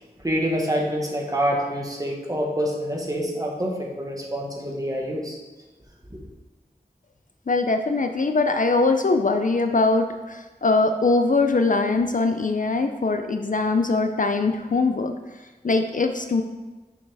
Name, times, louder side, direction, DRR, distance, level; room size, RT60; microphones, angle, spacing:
voice 1, 0.2-5.4, equal, 20° right, -1 dB, 1.3 m, -26 dB
voice 2, 7.5-15.1 15.6-16.4, left 3 dB, 50° left, 6 dB, 0.4 m, -22 dB
6.4 x 5.7 x 3.4 m, 1.2 s
wide cardioid pair, 50°, 17 cm